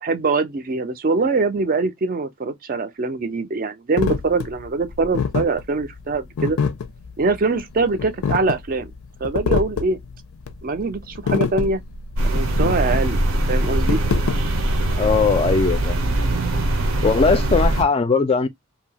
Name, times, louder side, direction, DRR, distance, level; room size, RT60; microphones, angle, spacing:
voice 1, 0.0-6.6 7.2-8.9 9.2-10.0 10.6-11.8 12.2-14.0, right 3 dB, 40° right, 0.4 m, -23 dB
sound 1, 4.0-14.9, left 5 dB, 85° left, 0.4 m, -26 dB
sound 2, 12.2-17.8, right 1 dB, 75° right, 0.7 m, -21 dB
voice 2, 15.0-16.2 17.0-18.5, left 4 dB, 25° left, 0.3 m, -19 dB
2.7 x 2.3 x 2.7 m
head